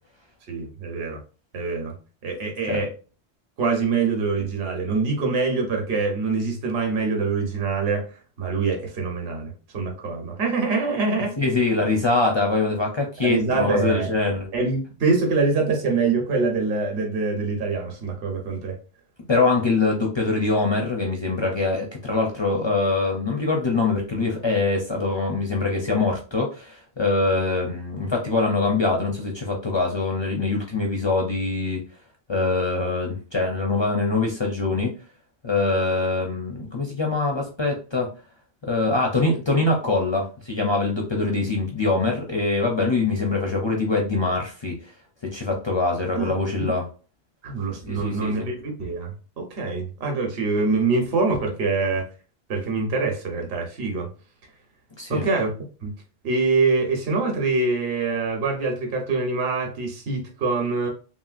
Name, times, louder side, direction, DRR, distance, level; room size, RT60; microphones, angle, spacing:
voice 1, 0.5-1.2 1.5-2.9 3.6-8.0 8.4-11.4 13.2-14.1 14.5-18.8 46.2-46.3 46.6-46.7 47.4-52.0 52.5-54.1 55.1-55.9 56.2-60.9, right 4 dB, 60° right, 2 dB, 1.0 m, -24 dB
voice 2, 11.4-14.5 19.3-31.8 32.3-34.9 35.4-38.1 38.6-44.9 45.3-46.9 47.9-48.5 55.0-55.3, left 3 dB, 40° left, 0 dB, 0.4 m, -23 dB
3.0 x 2.7 x 2.4 m, 0.36 s
omnidirectional pair, 1.2 m